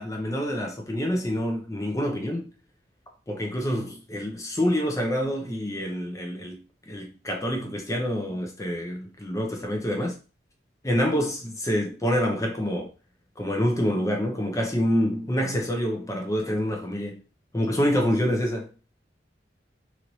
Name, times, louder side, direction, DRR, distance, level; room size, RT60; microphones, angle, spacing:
voice 1, 0.0-2.5 3.3-6.6 6.9-10.2 10.8-12.9 13.4-17.2 17.5-18.7, equal, 15° left, 0.6 m, -27 dB
3.0 x 2.6 x 3.0 m
head